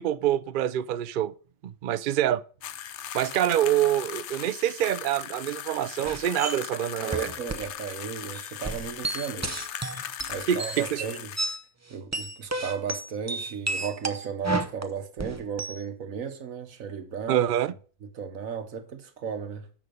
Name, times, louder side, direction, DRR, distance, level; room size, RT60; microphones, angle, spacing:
voice 1, 0.0-1.3 1.6-2.4 3.1-7.3 10.5-11.0 17.3-17.7, right 11 dB, 65° right, 0.5 m, -26 dB
sound 1, 2.6-11.6, left 10 dB, 65° left, 0.9 m, -39 dB
sound 2, 6.0-6.6 7.1-7.7 8.0-8.1 8.3-11.6 11.9-15.8, right 2 dB, 20° right, 0.5 m, -32 dB
voice 2, 7.0-9.6 9.9-11.3 11.9-17.5 18.0-19.7, right 7 dB, 85° right, 1.5 m, -35 dB
9.8 x 6.4 x 5.2 m
omnidirectional pair, 1.4 m